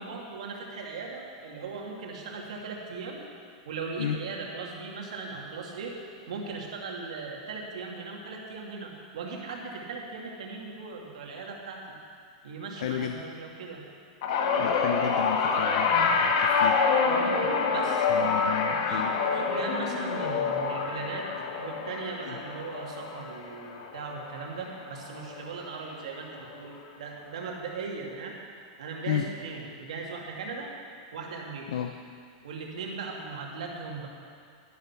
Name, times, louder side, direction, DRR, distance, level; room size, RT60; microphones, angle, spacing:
voice 1, 0.0-3.2 3.7-5.9 6.3-12.0 12.4-13.8 17.0-21.3 21.6-28.4 28.8-30.7 31.1-31.8 32.4-34.1, right 4 dB, 85° right, -1 dB, 2.5 m, -38 dB
voice 2, 12.8-13.2 14.6-16.8 18.1-19.2 22.3-22.4 29.1-29.2 31.7-31.9, left 9 dB, 65° left, 6 dB, 0.7 m, -32 dB
sound 1, 14.2-24.7 25.0-25.4 26.5-26.6, left 5 dB, 50° left, 1.3 m, -27 dB
12.0 x 11.0 x 5.9 m, 2.2 s
supercardioid pair, 170°, 3 cm